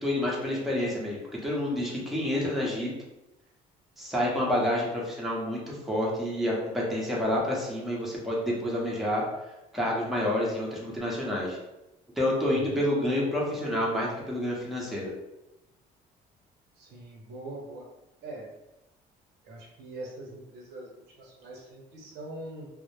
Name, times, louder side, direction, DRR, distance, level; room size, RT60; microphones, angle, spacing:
voice 1, 0.0-2.9 4.0-9.2 9.7-11.6 12.2-15.1, left 1 dB, ahead, -4 dB, 0.6 m, -28 dB
voice 2, 12.4-12.8 16.8-17.9 18.2-18.5 19.4-22.7, right 1 dB, 80° right, -1 dB, 0.8 m, -42 dB
2.1 x 2.0 x 3.0 m, 0.96 s
cardioid pair, 110°, 17 cm